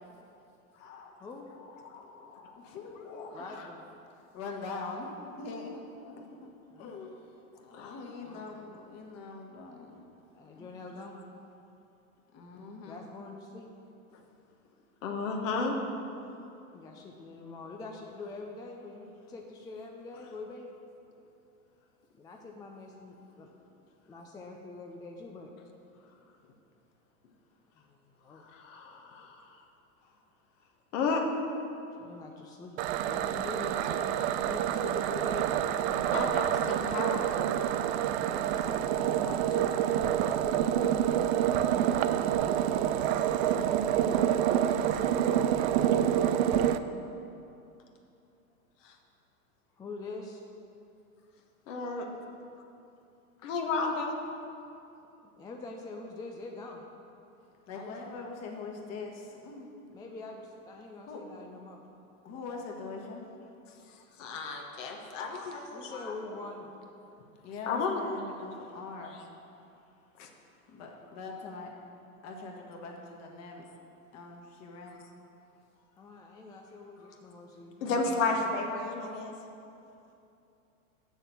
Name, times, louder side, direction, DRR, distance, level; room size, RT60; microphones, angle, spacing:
voice 1, 1.8-2.6 3.1-3.4 7.7-8.0 15.0-15.8 28.5-29.3 30.9-31.2 36.1-37.3 43.5-43.6 48.8-48.9 51.7-52.0 53.4-54.2 64.2-66.0 67.7-68.0 70.2-70.3 77.8-79.3, left 4 dB, 55° left, 2 dB, 1.4 m, -33 dB
voice 2, 2.6-3.4 4.3-5.1 5.4-6.5 6.8-7.2 7.6-9.9 10.5-10.7 12.3-13.0 46.4-47.0 57.7-59.7 61.1-61.2 62.2-63.2 63.6-63.7 67.4-69.2 70.7-71.7 72.2-73.6 74.1-75.0, left 4 dB, 35° left, 1 dB, 1.7 m, -42 dB
voice 3, 3.3-3.9 6.7-6.9 8.2-8.5 10.3-11.2 12.8-13.7 16.7-20.7 22.1-23.5 24.1-25.5 27.8-28.4 31.9-32.8 33.0-34.0 34.4-36.5 38.1-41.6 44.0-45.7 49.7-50.4 55.3-56.8 57.7-58.1 59.9-61.8 65.7-66.7 76.0-78.4, left 3 dB, 10° left, 1 dB, 0.4 m, -44 dB
sound 1, 32.8-46.8, right 10 dB, 50° right, 0.5 m, -27 dB
7.2 x 6.6 x 7.2 m, 2.7 s
hypercardioid pair, 100°, 44 cm